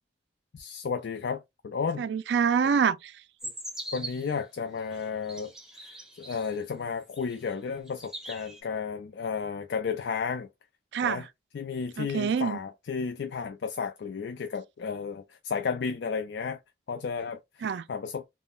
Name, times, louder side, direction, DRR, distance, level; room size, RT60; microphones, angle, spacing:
voice 1, 0.5-2.0 3.4-3.5 3.9-10.5 11.0-11.2 11.5-16.6 16.9-18.3, left 5 dB, 80° left, 0.4 m, -33 dB
voice 2, 2.0-3.2 10.9-11.3 12.0-12.6 17.6-17.8, right 6 dB, 80° right, 0.3 m, -26 dB
sound 1, 3.4-4.3 5.0-6.6 7.1-7.6 7.9-8.6, right 1 dB, 5° right, 0.7 m, -41 dB
3.6 x 2.1 x 2.3 m
head